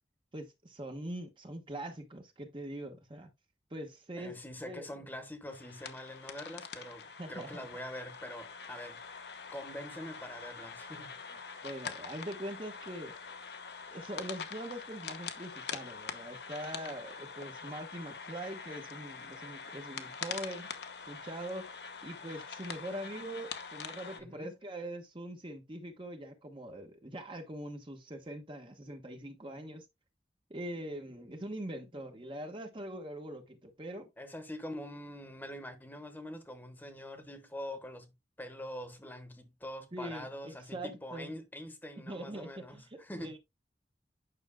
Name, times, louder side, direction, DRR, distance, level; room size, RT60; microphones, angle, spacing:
voice 1, 0.3-3.3 3.7-4.3 4.6-4.9 7.2-7.5 11.6-13.1 13.9-20.7 21.1-21.6 22.0-29.8 30.5-34.1 39.9-41.3 42.1-43.4, right 1 dB, 30° right, 1.2 m, -42 dB
voice 2, 4.2-9.0 9.5-11.2 24.2-24.5 34.2-43.4, left 1 dB, 10° left, 1.2 m, -44 dB
sound 1, 5.5-24.2, left 6 dB, 65° left, 1.0 m, -44 dB
9.8 x 6.1 x 2.2 m
head